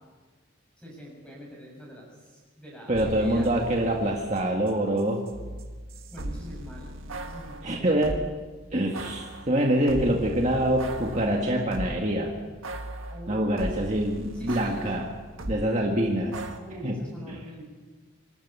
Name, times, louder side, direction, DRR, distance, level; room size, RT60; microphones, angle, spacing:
voice 1, 0.8-2.0 2.3-3.5 6.1-8.0 13.1-13.7 14.3-14.9 16.6-17.7, equal, 5° left, -2 dB, 7.3 m, -44 dB
voice 2, 2.9-5.2 7.6-8.2 8.7-12.4 13.3-15.1 15.5-16.4 16.8-17.4, right 1 dB, 35° right, 0 dB, 1.8 m, -25 dB
sound 1, 2.9-8.3 8.9-12.1 12.6-15.7 16.3-16.6, right 1 dB, 85° right, 1.6 m, -38 dB
24.5 x 12.5 x 8.4 m, 1.4 s
head